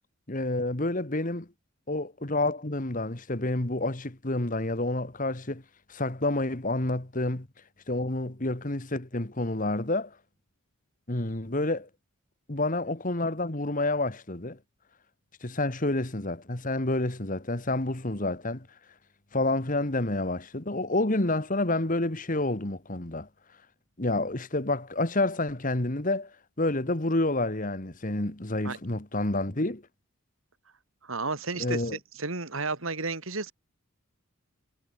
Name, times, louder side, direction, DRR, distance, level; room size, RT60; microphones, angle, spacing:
voice 1, 0.3-1.5 1.9-5.6 5.9-7.5 7.9-10.1 11.1-11.9 12.5-14.6 15.4-18.7 19.3-23.3 24.0-26.3 26.6-29.8 31.6-32.0, left 2 dB, 40° left, 1.7 m, -29 dB
voice 2, 31.0-31.8 32.1-33.5, right 3 dB, 70° right, 2.8 m, -32 dB
head